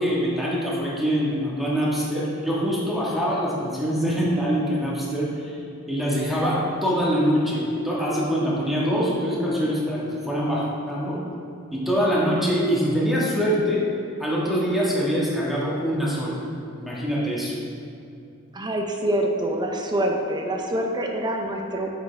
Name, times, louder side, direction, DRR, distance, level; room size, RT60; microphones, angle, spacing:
voice 1, 0.0-5.6 5.9-11.2 11.7-13.8 14.2-16.4 16.8-17.5, equal, ahead, -6 dB, 1.6 m, -24 dB
voice 2, 18.5-21.9, right 1 dB, 20° right, 2 dB, 0.8 m, -25 dB
8.9 x 6.8 x 3.4 m, 2.7 s
head